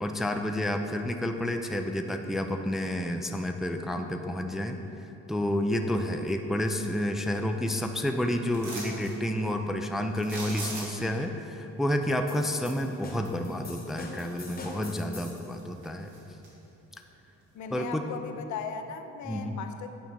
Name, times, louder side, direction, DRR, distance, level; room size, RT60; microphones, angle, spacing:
voice 1, 0.0-16.1 17.7-18.0 19.3-19.6, left 1 dB, ahead, 5 dB, 0.3 m, -30 dB
sound 1, 8.5-9.1 10.2-11.2 13.7-13.8 14.3-15.0 15.4-16.5 16.9-17.0, right 2 dB, 80° right, 1.6 m, -39 dB
sound 2, 12.3-15.5, left 2 dB, 30° left, 1.1 m, -44 dB
voice 2, 17.5-19.9, left 6 dB, 75° left, 7 dB, 0.6 m, -37 dB
8.6 x 3.8 x 5.3 m, 3.0 s
cardioid pair, 90°, 30 cm